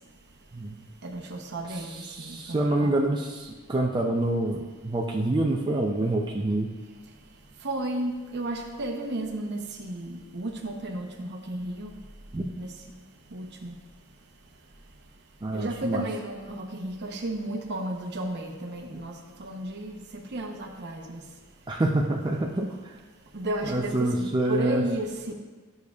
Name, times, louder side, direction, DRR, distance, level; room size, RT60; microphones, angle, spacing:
voice 1, 1.0-3.0 7.6-11.9 12.6-12.7 13.3-13.8 15.5-21.2 23.3-25.3, right 1 dB, 55° right, 3 dB, 0.8 m, -33 dB
voice 2, 2.0-6.7 12.3-12.5 15.4-16.0 18.9-19.0 21.7-22.7 23.7-24.8, right 1 dB, 20° right, -1 dB, 0.5 m, -26 dB
10.5 x 6.5 x 2.4 m, 1.3 s
head